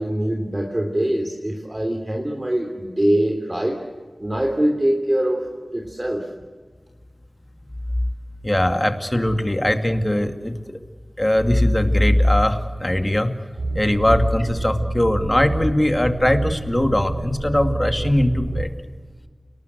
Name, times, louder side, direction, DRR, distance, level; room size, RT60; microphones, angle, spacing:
voice 1, 0.0-3.8 4.2-5.4 5.7-6.3, right 1 dB, 25° right, 2 dB, 3.0 m, -23 dB
voice 2, 8.4-10.6 11.2-13.3 13.8-18.7, left 1 dB, 20° left, 7 dB, 2.2 m, -20 dB
sound 1, 13.6-18.6, right 2 dB, 90° right, 5.1 m, -28 dB
29.5 x 19.0 x 8.1 m, 1.5 s
wide cardioid pair, 60°, 0 cm